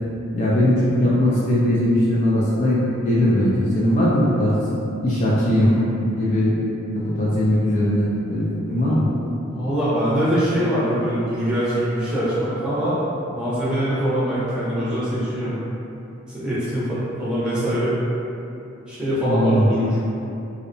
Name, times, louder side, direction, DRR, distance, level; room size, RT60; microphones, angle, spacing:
voice 1, 0.3-4.6 5.0-5.7 6.1-6.5 6.9-9.1 19.3-19.7, left 1 dB, 35° left, -8 dB, 0.3 m, -19 dB
voice 2, 5.5-5.9 8.9-9.0 9.5-13.0 13.3-15.6 16.3-17.9 18.9-20.0, equal, 5° right, -12 dB, 0.6 m, -23 dB
2.6 x 2.0 x 2.6 m, 2.7 s
head